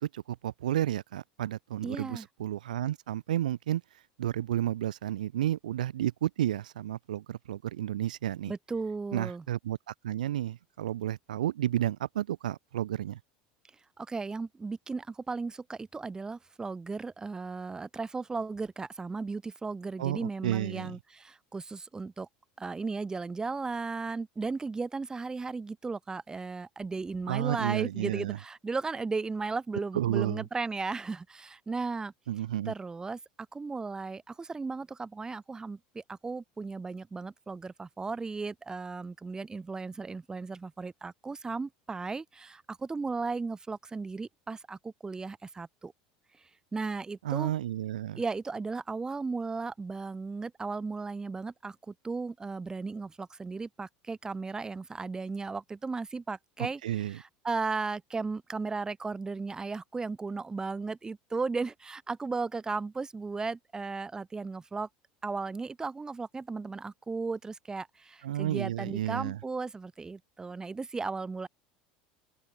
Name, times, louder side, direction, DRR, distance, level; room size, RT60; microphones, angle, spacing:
voice 1, 0.1-3.8 4.2-8.5 9.1-13.2 20.0-21.0 27.3-28.4 29.9-30.4 32.3-32.7 47.2-48.2 56.6-57.2 68.2-69.4, right 12 dB, 90° right, 0.7 m, -31 dB
voice 2, 1.8-2.3 8.5-9.4 14.0-22.3 22.6-32.1 32.7-33.2 33.5-45.9 46.7-47.5 48.1-64.9 65.2-71.5, right 4 dB, 15° right, 0.7 m, -35 dB
open air
hypercardioid pair, 90°, 4 cm